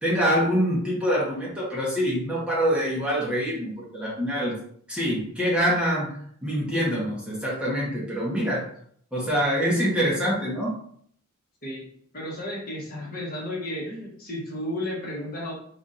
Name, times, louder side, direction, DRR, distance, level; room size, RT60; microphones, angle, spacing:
voice 1, 0.0-4.5 4.9-6.2 6.4-8.6 9.1-10.7, equal, 5° right, -6 dB, 1.0 m, -25 dB
voice 2, 12.1-15.5, left 1 dB, 40° left, -3 dB, 1.1 m, -33 dB
4.2 x 3.5 x 2.5 m, 0.63 s
head